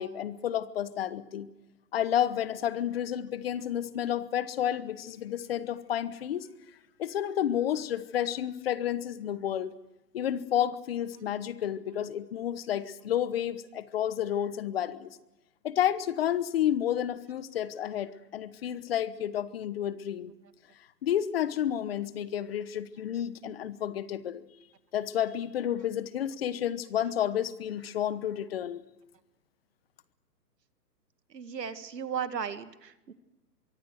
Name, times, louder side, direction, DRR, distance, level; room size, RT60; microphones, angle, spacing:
voice 1, 0.0-1.5 1.9-6.5 7.0-9.7 10.1-15.2 15.6-20.3 21.0-24.4 24.9-28.8, left 10 dB, 35° left, 15 dB, 1.1 m, -31 dB
voice 2, 31.3-33.1, right 7 dB, 80° right, 10 dB, 2.2 m, -36 dB
24.5 x 23.5 x 6.4 m, 0.96 s
hypercardioid pair, 155°, 49 cm